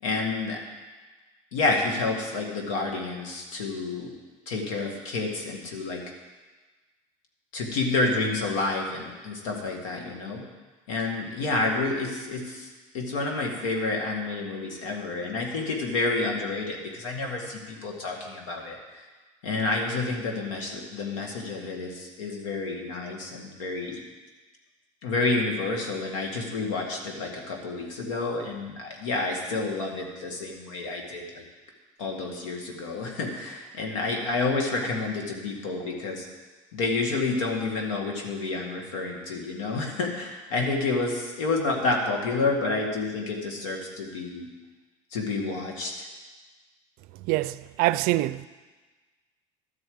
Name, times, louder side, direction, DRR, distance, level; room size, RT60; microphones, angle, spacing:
voice 1, 0.0-0.6 1.5-4.1 4.5-6.0 7.5-10.4 10.9-12.7 12.9-19.0 19.4-24.0 25.0-31.4 32.0-36.2 36.7-44.5 45.1-46.0, left 3 dB, 90° left, 2.0 m, -29 dB
voice 2, 47.3-48.5, right 17 dB, 65° right, 0.4 m, -25 dB
12.5 x 4.9 x 7.8 m
supercardioid pair, 95°, 16 cm